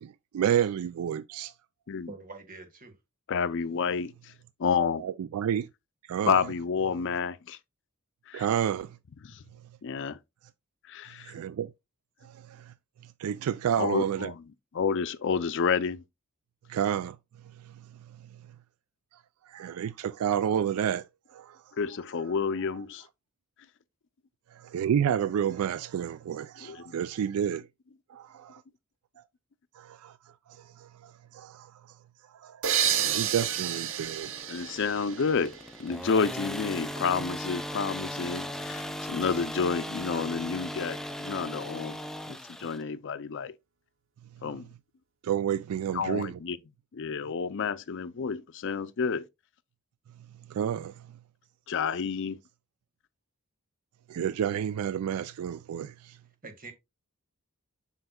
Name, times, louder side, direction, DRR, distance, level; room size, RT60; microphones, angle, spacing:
voice 1, 0.0-1.5 5.0-5.7 6.1-6.4 8.3-8.9 11.3-11.7 13.2-14.3 16.7-17.2 19.5-21.0 21.3-21.6 24.6-27.6 28.1-28.6 29.8-30.1 30.8-30.9 31.3-31.7 32.4-32.6 33.0-34.3 34.6-34.7 45.2-46.4 50.5-50.9 54.1-56.2, right 9 dB, 90° right, 0.3 m, -30 dB
voice 2, 2.1-2.9 56.4-56.7, right 3 dB, 40° right, 1.6 m, -44 dB
voice 3, 3.3-4.3 4.6-5.0 6.2-7.6 8.3-8.5 9.2-9.4 9.8-10.2 10.9-11.3 13.8-14.4 14.7-16.0 21.8-23.1 26.6-27.0 34.5-42.0 42.3-43.5 44.4-44.7 45.9-46.6 46.9-49.2 51.7-52.4, left 5 dB, 60° left, 0.5 m, -30 dB
sound 1, 32.6-36.2, right 9 dB, 60° right, 0.8 m, -30 dB
sound 2, 32.8-42.8, equal, ahead, 0.5 m, -38 dB
7.8 x 5.7 x 2.3 m
head